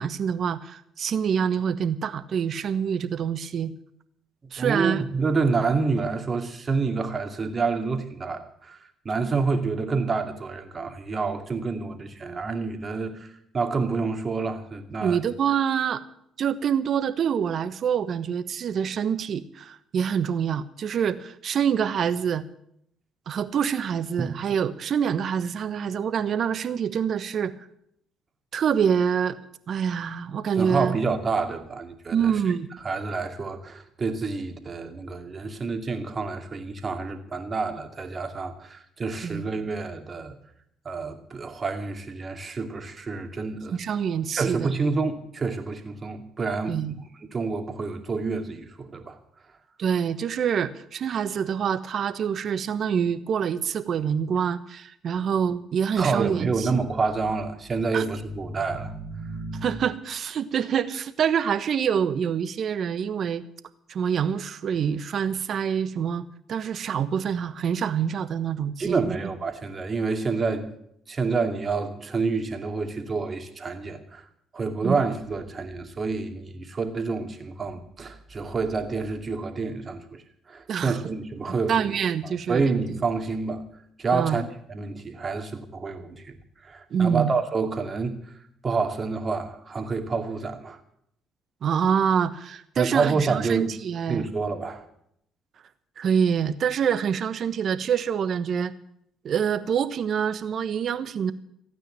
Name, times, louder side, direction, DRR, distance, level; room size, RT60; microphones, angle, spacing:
voice 1, 0.0-3.7 4.5-5.0 15.0-16.0 16.4-22.4 23.3-27.5 28.5-29.4 29.7-31.0 32.1-32.7 39.2-39.4 43.7-44.7 46.7-46.9 49.8-56.7 57.9-58.0 59.6-63.4 63.9-69.2 74.8-74.9 80.7-81.0 81.7-82.7 84.1-84.4 86.9-87.3 91.6-94.3 96.0-98.7 99.2-101.3, right 7 dB, 55° right, 13 dB, 1.2 m, -26 dB
voice 2, 4.6-8.8 9.0-15.2 24.2-24.3 30.6-32.4 32.8-40.4 40.8-43.8 44.3-46.8 47.3-49.2 56.0-59.8 68.8-70.7 71.1-74.2 74.5-81.9 82.2-83.7 84.0-86.4 86.6-88.3 88.6-90.8 92.8-93.7 94.1-94.8, right 4 dB, 40° right, 6 dB, 2.5 m, -28 dB
15.5 x 9.2 x 9.0 m, 0.72 s
hypercardioid pair, 55°, 0 cm